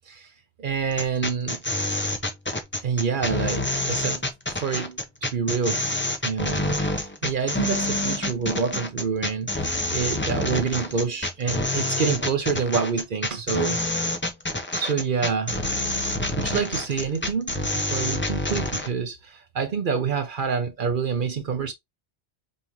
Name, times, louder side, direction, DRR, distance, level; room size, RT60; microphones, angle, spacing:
voice 1, 0.6-1.6 2.8-4.2 4.5-5.8 6.2-13.8 14.7-15.6 16.4-21.7, right 6 dB, 55° right, 0.7 m, -27 dB
sound 1, 0.9-18.9, left 2 dB, 15° left, 0.5 m, -27 dB
5.2 x 2.5 x 2.8 m
omnidirectional pair, 1.1 m